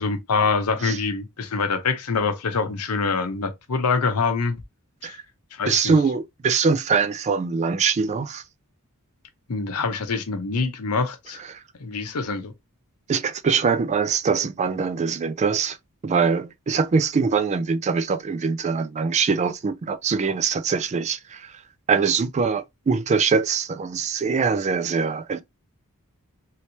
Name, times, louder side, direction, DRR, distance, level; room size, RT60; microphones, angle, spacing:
voice 1, 0.0-4.6 5.0-5.2 5.5-5.9 9.5-11.4 11.8-12.5, left 4 dB, 90° left, 0.8 m, -25 dB
voice 2, 5.6-8.4 11.5-11.6 13.1-15.8 16.0-21.6 21.9-25.4, right 5 dB, 30° right, 0.3 m, -23 dB
3.2 x 3.0 x 2.7 m
head